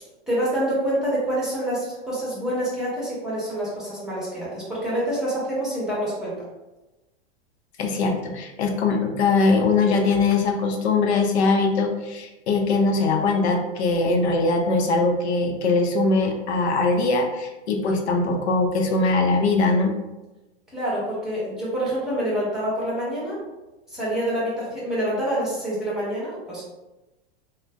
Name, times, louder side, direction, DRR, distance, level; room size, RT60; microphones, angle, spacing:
voice 1, 0.3-6.3 20.7-23.4 23.9-26.6, right 1 dB, ahead, -7 dB, 1.1 m, -26 dB
voice 2, 7.8-19.9, left 3 dB, 85° left, 3 dB, 0.6 m, -21 dB
2.5 x 2.1 x 3.3 m, 1.1 s
supercardioid pair, 140°, 32 cm